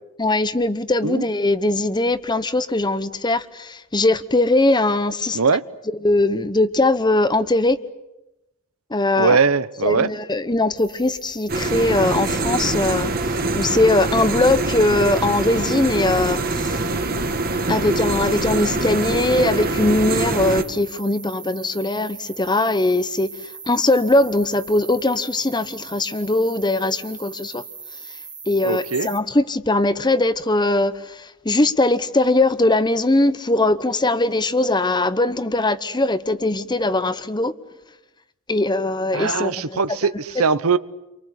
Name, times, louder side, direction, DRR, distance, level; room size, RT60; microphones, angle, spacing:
voice 1, 0.2-5.4 6.0-7.8 8.9-9.4 9.8-16.8 17.7-27.6 28.5-37.5 38.5-39.8, left 2 dB, 20° left, 1.0 m, -20 dB
voice 2, 9.2-10.1 28.6-29.1 39.1-40.8, right 5 dB, 85° right, 0.9 m, -20 dB
sound 1, 10.8-29.2, right 5 dB, 20° right, 2.0 m, -40 dB
sound 2, 11.5-20.6, right 2 dB, 45° right, 1.8 m, -24 dB
30.0 x 24.0 x 8.2 m
head